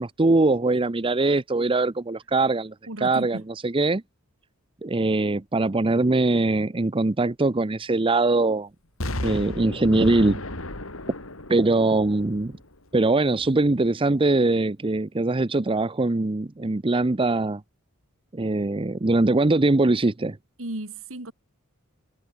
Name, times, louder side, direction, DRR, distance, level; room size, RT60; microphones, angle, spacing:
voice 1, 0.0-4.0 4.8-8.7 9.2-10.4 11.5-12.6 12.9-17.6 18.3-20.4, right 2 dB, 25° right, 0.6 m, -22 dB
voice 2, 2.9-3.4 20.6-21.3, right 1 dB, 70° right, 3.1 m, -34 dB
Explosion, 9.0-12.9 13.4-13.5, left 1 dB, 75° left, 4.9 m, -34 dB
head